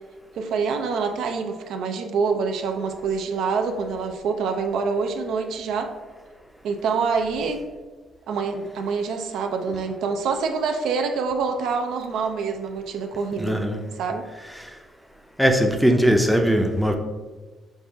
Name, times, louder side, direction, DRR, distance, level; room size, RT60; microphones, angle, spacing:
voice 1, 0.4-5.9 6.6-7.7 8.3-13.6 14.0-14.3, right 5 dB, 80° right, 5 dB, 0.4 m, -26 dB
voice 2, 13.4-13.8 15.4-17.0, equal, ahead, 4 dB, 0.5 m, -19 dB
5.3 x 2.3 x 3.5 m, 1.3 s
cardioid pair, 90°, 0 cm